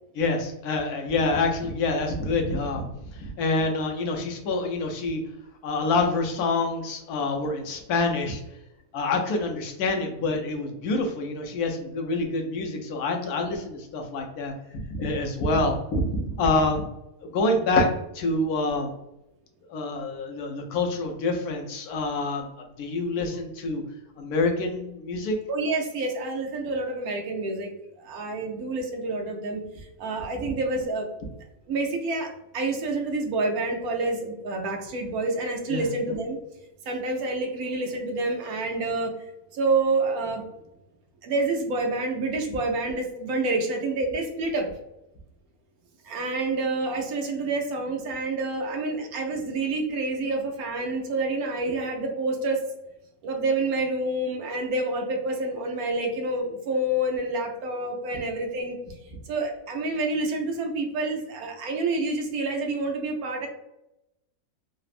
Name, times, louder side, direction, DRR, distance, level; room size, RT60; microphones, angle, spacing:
voice 1, 0.1-2.9 3.1-5.2 5.6-8.4 8.9-16.9 17.2-17.9 18.1-18.9 19.7-22.5 22.8-23.8 24.2-25.4 30.4-30.5 35.7-35.9, left 3 dB, 85° left, 2 dB, 1.1 m, -26 dB
voice 2, 25.5-27.7 28.0-31.1 31.7-36.4 36.9-39.2 39.5-40.5 41.2-44.7 46.0-52.6 53.2-58.8 59.3-63.5, right 2 dB, 75° right, 2 dB, 1.0 m, -28 dB
3.4 x 2.0 x 2.4 m, 0.87 s
omnidirectional pair, 1.6 m